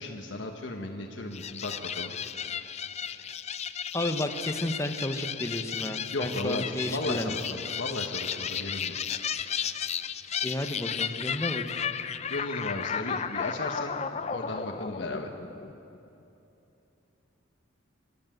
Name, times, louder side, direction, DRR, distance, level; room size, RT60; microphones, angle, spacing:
voice 1, 0.0-2.1 5.8-8.9 12.3-13.9 14.3-15.3, left 2 dB, 65° left, 2 dB, 1.3 m, -35 dB
sound 1, 1.3-16.0, left 7 dB, 35° left, 0.5 m, -34 dB
voice 2, 3.9-7.4 10.4-11.6, left 1 dB, 15° left, 7 dB, 1.0 m, -32 dB
25.5 x 12.0 x 9.2 m, 2.9 s
head